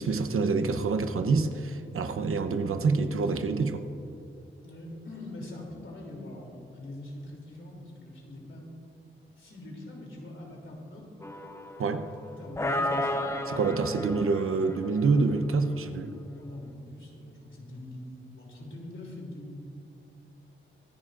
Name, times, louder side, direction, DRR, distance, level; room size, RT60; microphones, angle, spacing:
voice 1, 0.0-3.8 11.8-12.1 13.5-16.2, right 4 dB, 85° right, 8 dB, 0.8 m, -27 dB
voice 2, 4.6-8.6 9.3-11.1 12.2-13.5 14.0-14.2 16.3-19.6, left 1 dB, 70° left, -1 dB, 3.0 m, -43 dB
sound 1, 11.2-12.2 12.6-15.3, left 1 dB, 15° left, 0.8 m, -33 dB
24.5 x 11.0 x 2.5 m, 2.7 s
wide cardioid pair, 115°, 21 cm